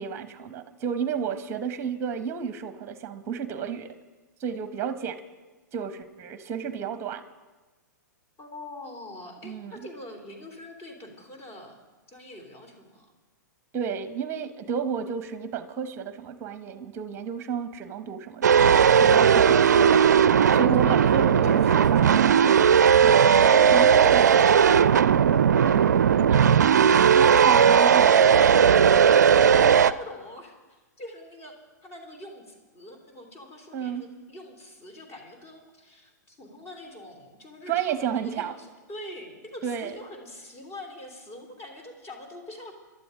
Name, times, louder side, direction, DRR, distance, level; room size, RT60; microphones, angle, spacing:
voice 1, 0.0-3.9 4.4-5.2 5.7-7.2 9.4-9.8 13.7-20.0 20.5-22.3 23.0-23.3 23.7-24.2 26.3-26.8 27.0-28.2 33.7-34.1 37.7-38.5 39.6-40.0, right 7 dB, 25° right, 11 dB, 1.0 m, -31 dB
voice 2, 8.4-11.8 12.1-13.1 20.4-22.5 23.3-24.9 25.3-26.2 27.5-31.6 31.8-42.7, left 1 dB, 25° left, 3 dB, 2.9 m, -42 dB
sound 1, 18.4-29.9, right 7 dB, 60° right, 0.4 m, -17 dB
22.5 x 12.0 x 3.8 m, 1.2 s
figure-of-eight pair, 105°, 10 cm